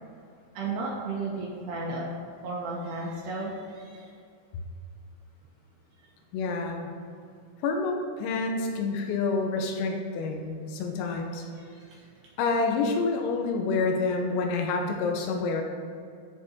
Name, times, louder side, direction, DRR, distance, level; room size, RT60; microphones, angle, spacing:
voice 1, 0.6-2.1 2.4-3.9, right 3 dB, 75° right, -4 dB, 2.6 m, -33 dB
voice 2, 6.3-6.9 7.6-11.4 12.4-15.6, left 4 dB, 90° left, 2 dB, 3.8 m, -28 dB
13.5 x 5.2 x 4.3 m, 2.4 s
omnidirectional pair, 6.0 m